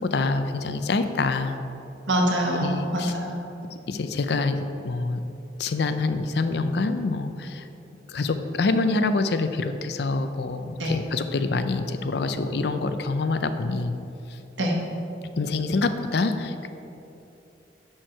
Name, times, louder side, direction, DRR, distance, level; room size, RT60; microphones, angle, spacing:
voice 1, 0.0-1.6 2.6-3.1 3.9-5.2 5.6-7.6 8.1-13.9 15.4-16.7, left 3 dB, 65° left, 9 dB, 0.5 m, -26 dB
voice 2, 2.1-3.4 10.8-11.0 14.6-14.8, equal, 90° right, 0 dB, 1.4 m, -24 dB
11.0 x 4.5 x 4.5 m, 2.9 s
head